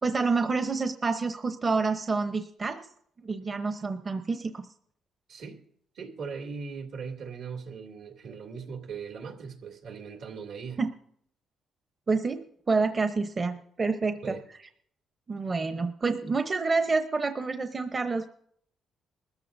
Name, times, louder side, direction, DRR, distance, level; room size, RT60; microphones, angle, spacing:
voice 1, 0.0-2.9 3.2-4.7 10.8-10.9 12.1-14.4 15.3-18.3, right 4 dB, 35° right, 0.9 m, -28 dB
voice 2, 5.3-5.6 5.9-10.8 14.2-14.4, right 5 dB, 75° right, 2.6 m, -39 dB
22.0 x 14.0 x 2.7 m
cardioid pair, 90°, 0 cm